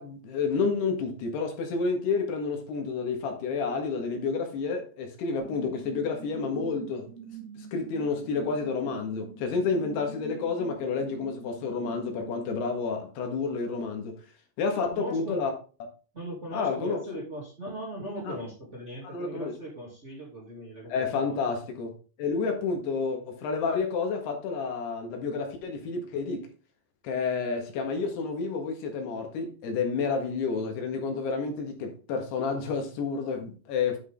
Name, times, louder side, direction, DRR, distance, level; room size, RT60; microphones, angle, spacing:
voice 1, 0.0-7.1 7.6-14.2 14.6-15.5 16.5-17.0 18.3-18.4 19.0-19.5 20.9-21.9 22.2-26.5 27.0-34.0, left 4 dB, 80° left, 3.7 m, -30 dB
sound 1, 5.4-12.7, right 6 dB, 80° right, 4.1 m, -45 dB
voice 2, 14.9-15.4 16.1-21.5, right 1 dB, 20° right, 2.5 m, -39 dB
9.8 x 6.3 x 3.7 m
omnidirectional pair, 4.7 m